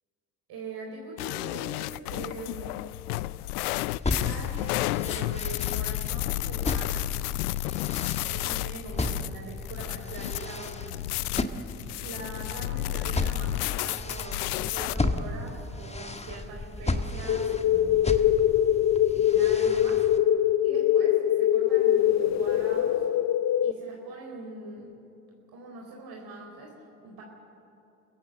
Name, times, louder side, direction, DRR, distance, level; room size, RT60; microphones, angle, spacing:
voice 1, 0.5-2.8 4.2-7.1 8.1-11.0 12.0-18.1 19.1-20.1 20.6-23.1 23.6-24.9 25.5-27.2, right 3 dB, 50° right, 0 dB, 4.1 m, -42 dB
sound 1, 1.2-15.0, left 17 dB, 80° left, 0.5 m, -32 dB
sound 2, 3.9-20.2, left 2 dB, 15° left, 1.6 m, -35 dB
sound 3, 17.3-23.7, left 11 dB, 35° left, 0.7 m, -23 dB
29.0 x 16.5 x 7.5 m, 2.8 s
hypercardioid pair, 60°, 45 cm